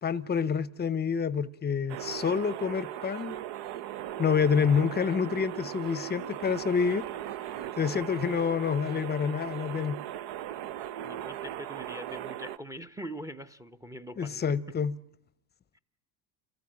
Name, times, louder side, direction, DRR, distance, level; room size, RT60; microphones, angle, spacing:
voice 1, 0.0-3.4 4.2-7.1 7.8-10.0 14.2-14.9, left 6 dB, 20° left, 0.8 m, -28 dB
sound 1, 1.9-12.6, right 12 dB, 60° right, 1.0 m, -38 dB
voice 2, 11.0-14.8, equal, 5° right, 0.8 m, -43 dB
30.0 x 14.0 x 8.9 m
supercardioid pair, 105°, 46 cm